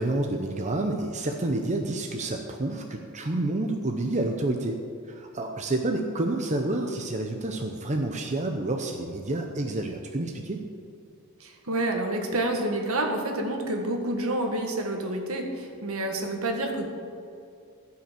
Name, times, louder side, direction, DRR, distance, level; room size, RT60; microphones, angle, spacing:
voice 1, 0.0-4.8 5.1-10.6, right 2 dB, 35° right, 3 dB, 0.8 m, -29 dB
voice 2, 11.4-16.9, right 1 dB, 70° right, 3 dB, 1.7 m, -28 dB
15.5 x 5.8 x 7.6 m, 2.5 s
head